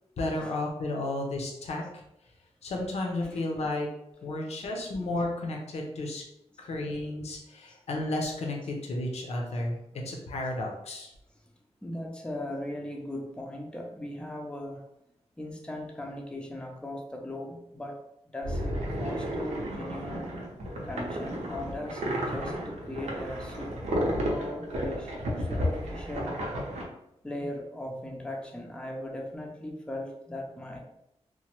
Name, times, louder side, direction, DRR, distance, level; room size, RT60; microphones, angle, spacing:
voice 1, 0.2-1.8 2.6-3.9 4.2-6.2 6.6-9.8 10.0-11.1, left 2 dB, 70° left, 1 dB, 0.6 m, -32 dB
voice 2, 3.2-3.7 4.2-5.3 9.9-10.2 11.8-14.8 15.4-18.0 18.3-20.3 20.9-23.8 24.3-26.4 27.2-30.8, left 1 dB, 10° left, 0 dB, 0.4 m, -39 dB
sound 1, 18.4-26.8, equal, 85° right, 0.7 m, -32 dB
3.0 x 2.1 x 2.9 m, 0.82 s
wide cardioid pair, 140°, 11 cm